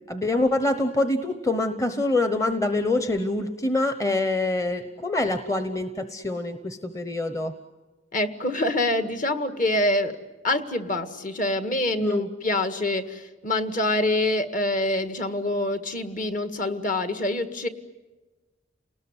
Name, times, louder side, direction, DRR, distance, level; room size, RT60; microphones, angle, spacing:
voice 1, 0.1-7.5 12.0-12.3, left 2 dB, 15° left, 9 dB, 1.0 m, -25 dB
voice 2, 8.1-10.2 10.4-17.7, left 1 dB, 45° left, 8 dB, 1.9 m, -26 dB
29.5 x 19.5 x 9.9 m, 1.2 s
head